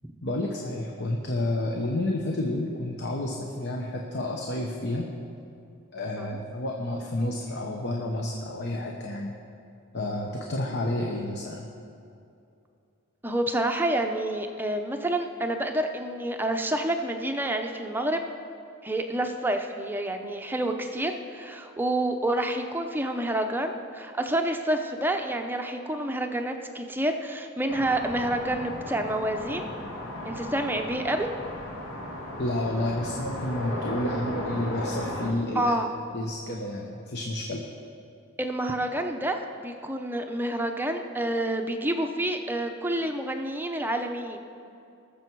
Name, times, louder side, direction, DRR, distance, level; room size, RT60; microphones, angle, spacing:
voice 1, 0.2-5.1 5.9-9.3 9.9-11.7 32.4-35.7 36.1-37.6, left 1 dB, 55° left, 0 dB, 1.0 m, -30 dB
voice 2, 13.2-18.2 18.8-29.7 30.2-31.3 35.5-35.9 38.4-44.4, right 1 dB, 10° right, 4 dB, 0.7 m, -28 dB
sound 1, 27.7-35.3, left 1 dB, 85° left, 2.3 m, -35 dB
20.0 x 7.0 x 4.7 m, 2.6 s
head